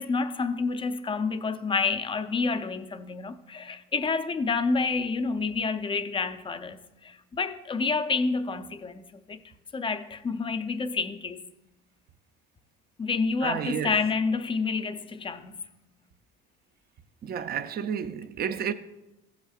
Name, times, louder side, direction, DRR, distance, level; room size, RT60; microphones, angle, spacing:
voice 1, 0.0-9.4 9.7-11.4 13.0-15.6, left 4 dB, 20° left, 0.5 m, -29 dB
voice 2, 13.4-14.0 17.2-18.7, right 8 dB, 35° right, 0.5 m, -31 dB
15.0 x 8.2 x 2.4 m
supercardioid pair, 105°, 29 cm